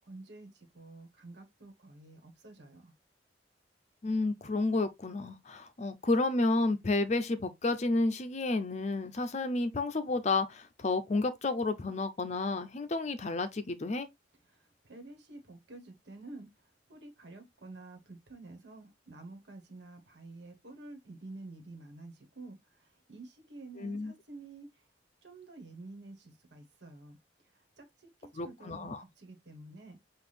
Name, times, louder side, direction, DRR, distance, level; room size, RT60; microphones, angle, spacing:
voice 1, 0.0-2.9 14.5-24.8 25.2-27.2 27.5-30.0, right 2 dB, 70° right, 1.4 m, -50 dB
voice 2, 4.0-14.1 23.8-24.1 28.3-29.0, left 2 dB, 40° left, 0.5 m, -31 dB
6.0 x 2.5 x 3.3 m
head